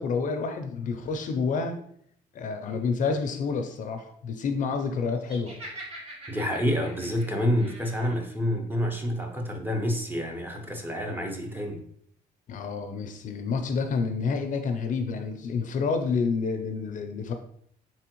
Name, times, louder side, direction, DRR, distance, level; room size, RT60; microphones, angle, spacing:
voice 1, 0.0-1.8 2.3-5.6 12.5-17.3, left 5 dB, 50° left, 6 dB, 0.5 m, -29 dB
Laughter, 5.2-8.2, right 1 dB, 40° right, 1.5 m, -43 dB
voice 2, 6.3-11.8, equal, 10° right, 2 dB, 0.8 m, -28 dB
4.4 x 3.4 x 2.9 m, 0.66 s
cardioid pair, 110°, 17 cm